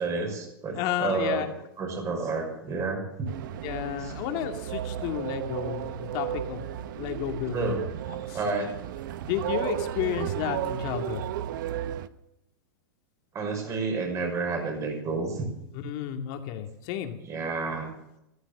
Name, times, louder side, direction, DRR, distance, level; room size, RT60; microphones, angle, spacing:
voice 1, 0.0-1.5 1.8-3.3 4.0-4.1 7.5-7.8 8.3-8.7 13.3-15.5 17.3-17.9, right 4 dB, 25° right, 3 dB, 5.7 m, -30 dB
voice 2, 0.7-1.5 3.6-6.7 7.0-7.8 8.3-8.4 9.2-11.2 15.8-17.2, left 10 dB, 45° left, 5 dB, 2.3 m, -32 dB
sound 1, 3.3-12.1, right 11 dB, 65° right, 1.0 m, -34 dB
14.5 x 14.0 x 6.8 m, 0.83 s
hypercardioid pair, 135°, 12 cm